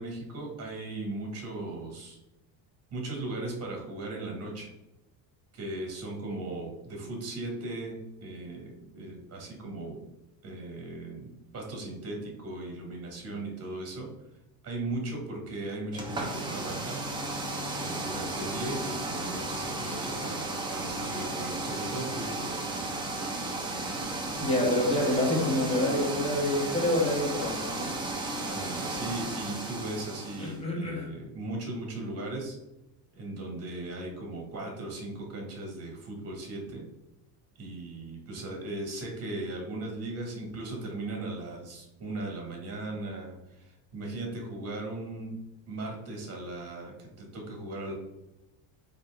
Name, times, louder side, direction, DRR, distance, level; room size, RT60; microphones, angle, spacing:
voice 1, 0.0-2.2 2.9-4.7 5.5-10.0 10.4-11.3 11.5-14.1 14.6-17.0 17.8-22.5 28.5-32.6 33.1-36.9 37.6-45.4 45.7-47.9, right 2 dB, 35° right, 0 dB, 1.4 m, -37 dB
sound 1, 15.9-30.6, right 2 dB, 10° right, 0.4 m, -34 dB
voice 2, 24.4-27.9 30.4-31.1, left 1 dB, 15° left, -2 dB, 1.1 m, -27 dB
4.2 x 2.7 x 3.4 m, 0.93 s
cardioid pair, 140°, 44 cm